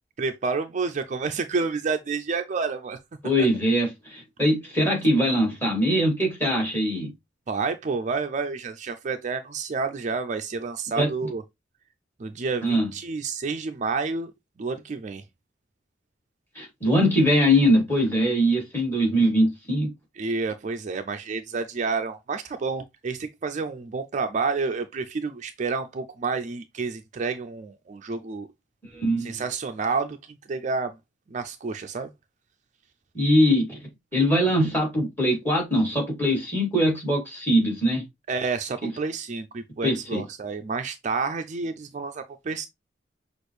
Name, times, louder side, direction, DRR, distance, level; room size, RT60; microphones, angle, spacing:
voice 1, 0.2-3.0 7.5-11.4 12.2-14.3 14.6-15.2 20.2-28.5 29.2-30.2 30.5-31.0 31.3-32.1 38.3-42.7, right 4 dB, 40° right, 0.4 m, -29 dB
voice 2, 3.2-7.1 11.0-11.1 12.6-12.9 16.5-19.9 28.9-29.4 33.1-33.8 34.1-38.0 38.8-38.9 39.8-40.2, equal, 10° left, 2.7 m, -22 dB
6.2 x 2.4 x 3.2 m
head